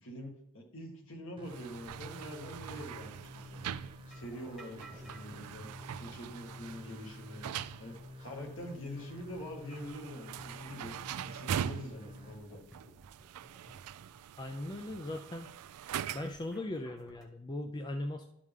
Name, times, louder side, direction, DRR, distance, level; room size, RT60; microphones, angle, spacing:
voice 1, 0.0-3.7 4.1-7.5 7.8-10.9 11.2-12.6, equal, 60° left, 1 dB, 1.9 m, -45 dB
sound 1, 1.4-12.4, left 1 dB, 25° right, 1.1 m, -50 dB
sound 2, 1.4-16.5, right 9 dB, 90° right, 0.3 m, -43 dB
sound 3, 4.1-17.2, right 1 dB, ahead, 1.2 m, -59 dB
voice 2, 14.4-15.5 16.1-18.2, left 1 dB, 20° left, 5 dB, 0.4 m, -39 dB
12.0 x 4.9 x 3.6 m, 0.81 s
head